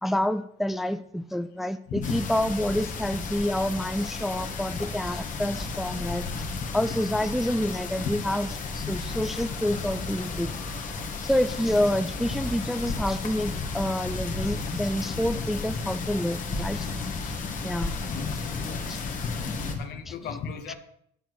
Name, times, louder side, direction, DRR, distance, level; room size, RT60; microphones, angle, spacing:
voice 1, 0.0-6.3 6.7-10.5 11.2-16.9 17.2-17.3 17.6-18.0 18.9-19.0 20.1-20.2 20.7-20.8, left 1 dB, ahead, 11 dB, 0.4 m, -28 dB
voice 2, 1.9-2.2 5.9-6.1 8.0-8.1 18.1-18.2 19.2-20.7, left 6 dB, 75° left, 7 dB, 1.4 m, -34 dB
sound 1, 2.0-19.8, left 4 dB, 50° left, 1.6 m, -33 dB
10.0 x 4.6 x 7.9 m, 0.68 s
cardioid pair, 110°, 17 cm